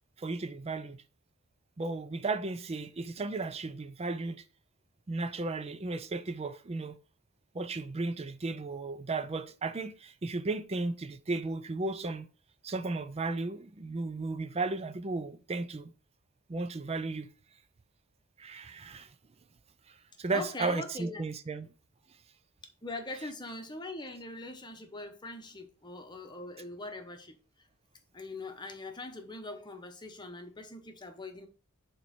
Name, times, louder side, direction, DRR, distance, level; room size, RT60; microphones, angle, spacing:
voice 1, 0.2-1.0 1.8-4.4 5.1-7.0 7.5-12.3 12.6-15.9 16.5-17.3 18.4-19.1 19.9-21.7, right 3 dB, 30° right, 0.4 m, -35 dB
voice 2, 20.3-21.3 22.8-27.7 28.1-31.5, left 2 dB, 20° left, 1.0 m, -42 dB
6.7 x 3.1 x 5.9 m
head